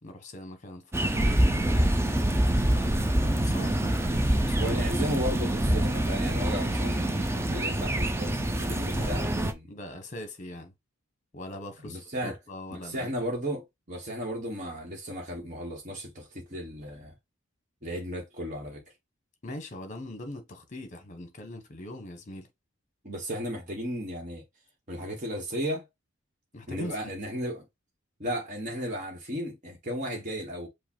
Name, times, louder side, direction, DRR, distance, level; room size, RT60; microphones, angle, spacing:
voice 1, 0.0-1.9 2.7-2.9 3.2-4.8 8.8-9.3 9.7-10.7 11.3-13.1 19.4-22.5 26.5-27.1, left 1 dB, 35° left, 1.1 m, -41 dB
sound 1, 0.9-9.5, right 1 dB, 10° right, 0.5 m, -26 dB
voice 2, 4.6-9.7 11.8-12.3 12.8-17.1 17.8-18.8 23.0-24.4 24.9-25.9 26.7-27.6 28.2-30.7, equal, 40° right, 1.3 m, -34 dB
5.0 x 2.3 x 4.4 m
head